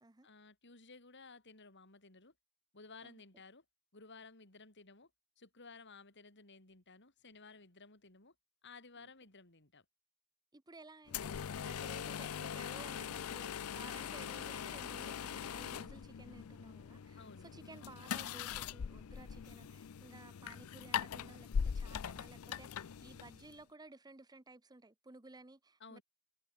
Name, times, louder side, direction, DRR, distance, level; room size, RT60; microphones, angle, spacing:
voice 1, 0.2-2.3 2.7-3.6 3.9-5.1 5.4-8.3 8.6-9.9 17.2-17.6 25.8-26.0, left 4 dB, 55° left, 5.3 m, -56 dB
voice 2, 10.5-26.0, right 2 dB, 20° right, 0.9 m, -56 dB
sound 1, 11.1-23.6, left 7 dB, 85° left, 0.5 m, -41 dB
head